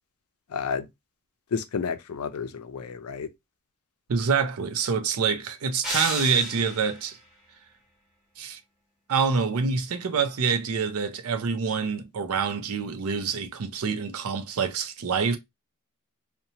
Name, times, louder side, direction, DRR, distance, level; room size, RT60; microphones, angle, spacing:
voice 1, 0.5-0.9 1.5-3.3, left 6 dB, 80° left, 0.4 m, -31 dB
voice 2, 4.1-7.2 8.4-8.6 9.1-15.4, right 5 dB, 75° right, 0.5 m, -26 dB
sound 1, 5.8-7.1, equal, ahead, 1.0 m, -32 dB
2.8 x 2.1 x 2.7 m
head